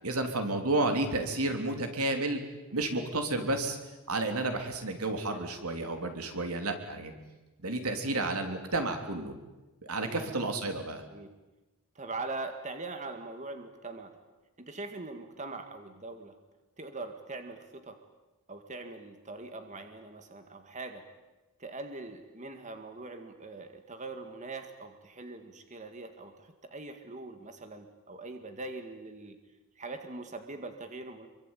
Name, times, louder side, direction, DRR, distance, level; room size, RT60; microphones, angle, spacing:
voice 1, 0.0-2.4 2.7-3.8 4.1-7.1 7.6-9.3 9.8-11.0, right 2 dB, 85° right, 5 dB, 3.5 m, -31 dB
voice 2, 10.0-10.3 11.1-11.3 12.0-14.1 14.6-16.4 16.8-18.0 18.5-21.0 21.6-29.4 29.8-31.3, right 3 dB, 35° right, 6 dB, 2.0 m, -42 dB
26.5 x 23.5 x 9.1 m, 1.1 s
head